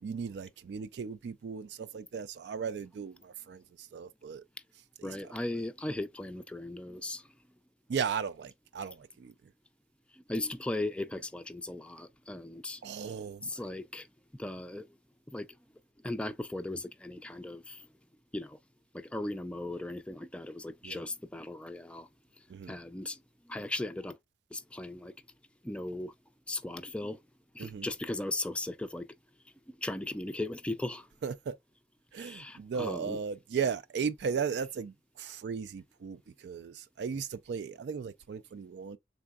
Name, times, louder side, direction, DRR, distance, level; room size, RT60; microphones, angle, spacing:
voice 1, 0.0-4.4 5.0-5.1 7.9-9.3 12.8-13.6 20.8-21.0 22.5-22.7 27.6-27.9 31.2-31.6 32.1-39.0, right 6 dB, 75° right, 0.3 m, -36 dB
voice 2, 5.0-7.2 10.1-12.8 13.1-14.1 14.3-14.9 15.3-15.5 16.0-17.9 18.3-18.6 18.9-22.1 22.7-23.2 23.5-24.2 24.5-25.1 25.6-26.1 26.5-27.2 27.5-29.1 29.8-31.1 32.2-33.2, left 2 dB, 5° left, 0.3 m, -37 dB
4.7 x 3.5 x 2.3 m
head